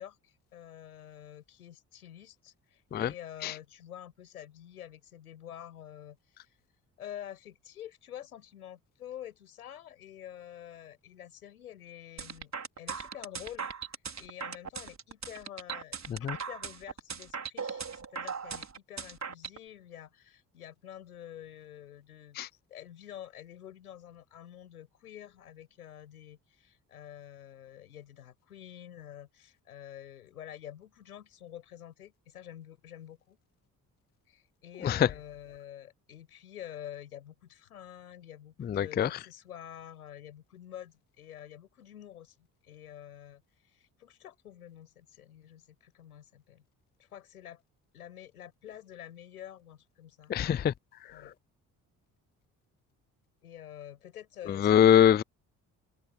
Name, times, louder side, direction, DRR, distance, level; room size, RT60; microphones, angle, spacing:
voice 1, 0.0-6.5 7.0-12.5 12.8-13.7 14.2-22.4 22.7-33.4 34.3-42.3 42.6-46.6 47.0-47.6 47.9-50.3 51.1-51.3 53.4-54.8, left 11 dB, 90° left, 6.8 m, -48 dB
sound 1, 12.2-19.6, right 6 dB, 40° right, 5.2 m, -38 dB
voice 2, 38.7-39.1 50.3-50.7 54.6-55.2, left 9 dB, 25° left, 0.4 m, -22 dB
open air
hypercardioid pair, 45°, 44 cm